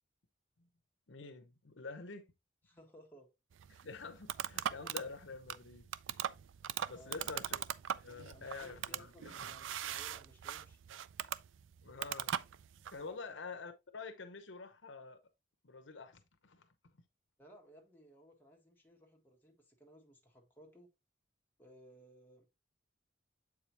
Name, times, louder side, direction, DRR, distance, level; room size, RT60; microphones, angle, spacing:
voice 1, 1.1-2.3 3.7-5.9 6.9-7.6 8.0-9.6 11.8-12.4 12.9-15.2 15.6-16.7, left 4 dB, 75° left, 0.9 m, -47 dB
voice 2, 2.6-3.3 6.9-7.5 8.3-10.8 12.9-13.4 17.4-20.9 21.6-22.4, equal, 10° left, 1.6 m, -60 dB
sound 1, 3.5-13.0, right 10 dB, 85° right, 0.4 m, -41 dB
7.7 x 4.9 x 2.9 m
head